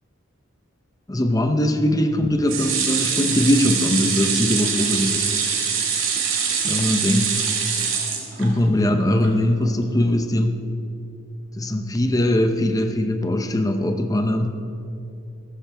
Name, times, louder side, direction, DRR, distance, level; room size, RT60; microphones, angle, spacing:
voice 1, 1.1-5.3 6.6-7.4 8.4-10.6 11.6-14.6, left 1 dB, 20° left, 6 dB, 0.7 m, -21 dB
sound 1, 2.5-8.8 9.2-9.3 9.6-9.7, right 6 dB, 90° right, 2.0 m, -24 dB
14.5 x 14.0 x 3.5 m, 2.6 s
head